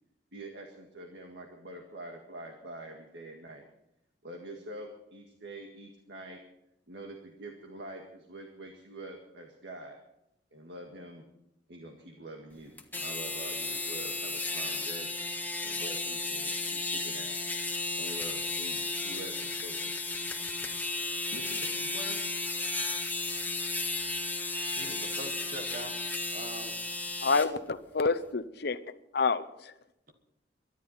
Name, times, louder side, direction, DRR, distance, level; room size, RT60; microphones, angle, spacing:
voice 1, 0.3-3.6 4.2-6.4 6.9-10.0 10.5-11.2 11.7-15.1 15.6-17.4 18.0-19.9 21.3-22.2, right 1 dB, 70° right, 1.9 m, -45 dB
sound 1, 12.8-27.5, left 3 dB, 10° left, 1.5 m, -34 dB
voice 2, 24.7-26.0 26.3-26.7, right 1 dB, 50° right, 1.5 m, -42 dB
voice 3, 27.2-29.7, left 4 dB, 65° left, 0.9 m, -29 dB
23.5 x 11.0 x 4.3 m
head